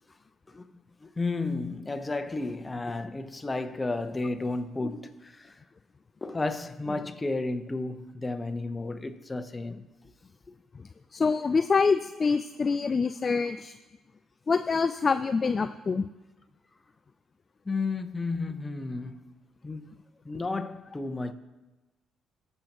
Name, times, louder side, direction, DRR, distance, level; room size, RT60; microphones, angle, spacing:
voice 1, 1.0-5.6 6.2-9.9 17.6-19.4 19.6-19.9 20.2-21.3, left 3 dB, 25° left, 0.9 m, -32 dB
voice 2, 11.1-13.7 14.5-16.1, left 5 dB, 40° left, 0.3 m, -25 dB
20.0 x 6.8 x 3.0 m
supercardioid pair, 60°, 0 cm